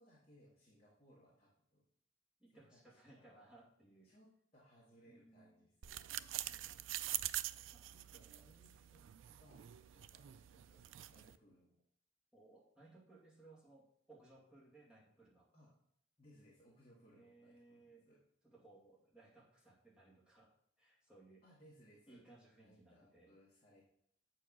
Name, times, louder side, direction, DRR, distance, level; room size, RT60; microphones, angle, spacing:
voice 1, 0.0-1.8 2.5-3.4 4.0-6.2 7.7-11.7 15.5-15.7 16.2-18.2 21.4-22.2 22.6-23.8, equal, 30° left, -7 dB, 1.9 m, -66 dB
voice 2, 2.4-4.1 5.1-5.7 7.7-7.9 10.6-10.7 12.3-15.5 17.1-18.1 18.4-21.4 22.1-23.3, right 2 dB, 5° right, -5 dB, 2.2 m, -63 dB
sound 1, 5.8-11.4, right 13 dB, 75° right, 0.3 m, -45 dB
8.0 x 4.7 x 6.0 m, 0.69 s
head